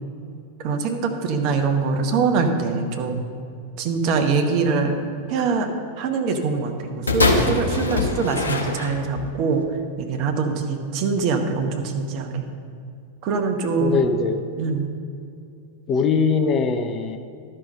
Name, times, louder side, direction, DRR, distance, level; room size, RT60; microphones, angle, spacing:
voice 1, 0.6-3.2 3.8-5.0 5.3-5.7 6.0-9.6 10.0-12.4 13.2-14.0 14.6-14.9, right 4 dB, 40° right, 4 dB, 1.0 m, -23 dB
sound 1, 7.1-9.3 10.1-10.2, left 3 dB, 75° left, 0.9 m, -22 dB
voice 2, 13.8-14.4 15.9-17.2, left 5 dB, 30° left, 7 dB, 0.6 m, -21 dB
12.0 x 5.6 x 5.3 m, 2.5 s
figure-of-eight pair, 90°, 0 cm